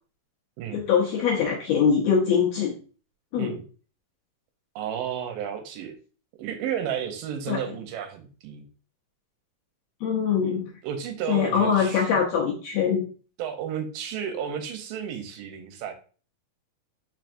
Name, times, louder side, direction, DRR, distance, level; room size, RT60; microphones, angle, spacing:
voice 1, 0.7-2.7 3.3-3.5 7.5-7.6 10.0-10.7 11.3-13.0, left 7 dB, 75° left, -2 dB, 1.6 m, -23 dB
voice 2, 4.8-5.9 6.4-8.7 10.8-12.2 13.4-15.9, right 8 dB, 85° right, 6 dB, 2.4 m, -32 dB
4.6 x 4.5 x 2.5 m, 0.39 s
omnidirectional pair, 3.8 m